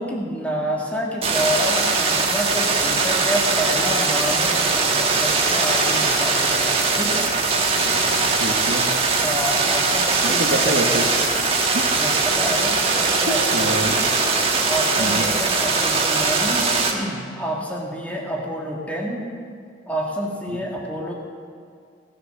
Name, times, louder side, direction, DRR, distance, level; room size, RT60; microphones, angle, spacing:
voice 1, 0.0-7.3 9.2-10.8 11.9-14.0 14.4-19.2 19.9-21.1, equal, 10° left, -2 dB, 1.8 m, -28 dB
sound 1, 1.2-16.9, right 4 dB, 30° right, 1.4 m, -21 dB
voice 2, 7.7-8.9 10.2-11.1 11.7-11.9 13.3-14.0 15.0-15.2 20.5-20.6, right 1 dB, 75° right, -2 dB, 1.3 m, -26 dB
17.5 x 7.1 x 6.5 m, 2.3 s
head